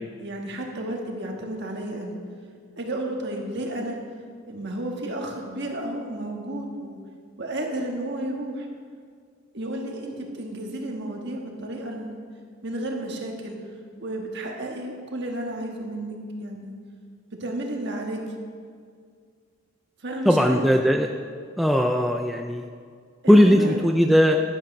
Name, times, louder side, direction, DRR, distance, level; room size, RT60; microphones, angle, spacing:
voice 1, 0.2-2.1 2.8-4.0 4.5-7.0 7.4-8.7 9.5-12.2 12.6-13.6 14.0-16.8 17.4-18.2 20.0-20.7 23.2-23.8, right 1 dB, 50° right, 1 dB, 1.5 m, -32 dB
voice 2, 20.3-21.1 21.6-22.7 23.3-24.4, equal, ahead, 2 dB, 0.3 m, -18 dB
11.5 x 8.3 x 5.3 m, 2.1 s
head